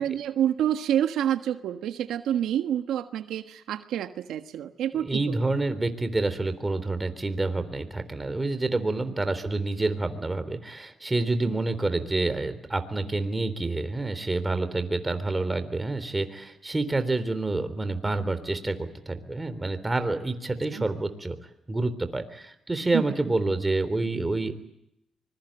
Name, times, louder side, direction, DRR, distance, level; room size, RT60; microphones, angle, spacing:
voice 1, 0.0-5.5 11.4-11.6 20.7-20.8 22.9-23.0, right 10 dB, 80° right, 8 dB, 1.4 m, -28 dB
voice 2, 4.9-21.4 21.7-24.5, right 2 dB, 15° right, 10 dB, 3.6 m, -28 dB
25.0 x 22.0 x 8.8 m, 0.81 s
cardioid pair, 90°, 0 cm